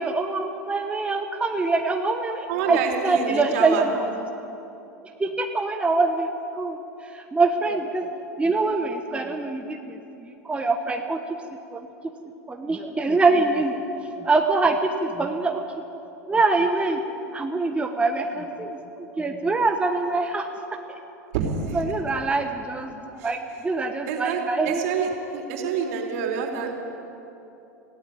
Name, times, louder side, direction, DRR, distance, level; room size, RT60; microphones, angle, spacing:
voice 1, 0.0-4.1 5.2-8.1 8.4-11.2 11.7-11.9 12.5-13.9 14.2-15.7 16.3-17.0 17.3-21.0 21.7-24.8, right 3 dB, 15° right, 4 dB, 1.3 m, -24 dB
voice 2, 2.5-3.8 21.3-21.8 23.2-23.3 24.1-26.7, right 6 dB, 60° right, 2 dB, 3.6 m, -27 dB
18.5 x 16.0 x 8.7 m, 2.9 s
hypercardioid pair, 90°, 9 cm